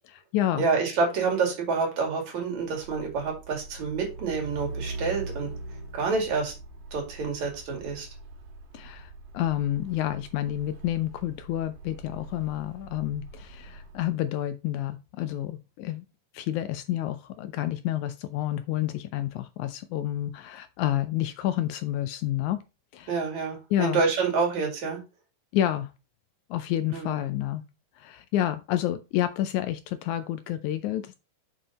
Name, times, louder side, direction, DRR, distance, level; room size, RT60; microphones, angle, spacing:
voice 1, 0.1-0.7 8.7-16.0 16.3-22.6 22.9-23.2 23.7-24.0 25.5-25.9 26.5-27.6 28.0-31.2, left 13 dB, 80° left, 1.8 m, -29 dB
voice 2, 0.6-5.5 5.9-6.5 6.9-8.1 23.1-25.0 26.9-27.2, right 4 dB, 60° right, 3.5 m, -28 dB
Truck, 2.7-14.1, right 2 dB, 85° right, 2.9 m, -42 dB
6.8 x 5.6 x 4.1 m
omnidirectional pair, 3.7 m